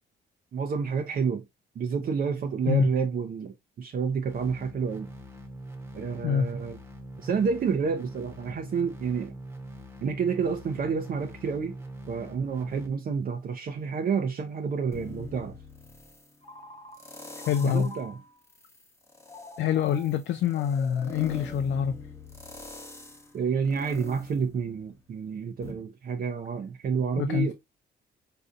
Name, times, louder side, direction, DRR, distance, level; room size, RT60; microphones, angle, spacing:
voice 1, 0.5-1.4 1.8-5.1 5.9-6.8 7.2-9.4 10.0-11.8 12.1-15.6 17.6-18.2 23.3-27.5, right 6 dB, 45° right, 0.5 m, -29 dB
sound 1, 4.3-12.9, right 1 dB, 10° right, 0.9 m, -43 dB
sound 2, 14.9-16.3 16.9-18.0 18.5-25.2 25.6-25.7, left 2 dB, 15° left, 0.8 m, -44 dB
Telephone, 16.4-18.4 19.3-22.3, left 3 dB, 30° left, 1.1 m, -47 dB
voice 2, 17.5-17.9 19.6-22.0 27.2-27.5, left 8 dB, 70° left, 0.4 m, -25 dB
3.9 x 2.6 x 2.4 m
cardioid pair, 90°, 20 cm